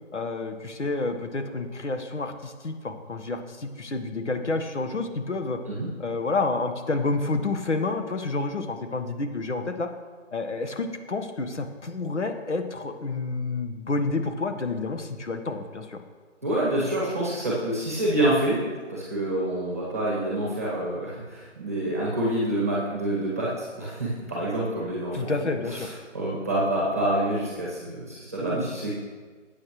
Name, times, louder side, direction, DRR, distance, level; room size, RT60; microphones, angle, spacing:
voice 1, 0.1-5.6 6.0-9.9 10.3-16.0 25.1-25.9, left 3 dB, 65° left, 6 dB, 1.3 m, -29 dB
voice 2, 16.4-18.6 18.9-28.9, right 1 dB, 10° right, -6 dB, 1.3 m, -27 dB
14.5 x 8.6 x 3.1 m, 1.5 s
figure-of-eight pair, 175°, 37 cm